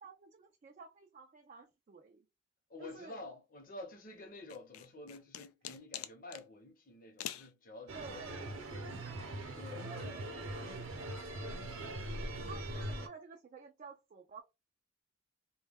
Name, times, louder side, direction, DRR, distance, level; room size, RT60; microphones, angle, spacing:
voice 1, 0.0-2.3 2.8-3.2 7.9-8.4 9.9-10.3 12.4-14.4, right 5 dB, 35° right, 0.3 m, -52 dB
voice 2, 2.7-8.2 8.7-9.3 9.6-10.2, left 2 dB, 40° left, 0.7 m, -50 dB
sound 1, 4.5-6.5 7.2-7.5, left 11 dB, 85° left, 0.3 m, -44 dB
sound 2, 7.9-13.1, right 1 dB, 65° right, 0.7 m, -41 dB
2.2 x 2.2 x 3.3 m
head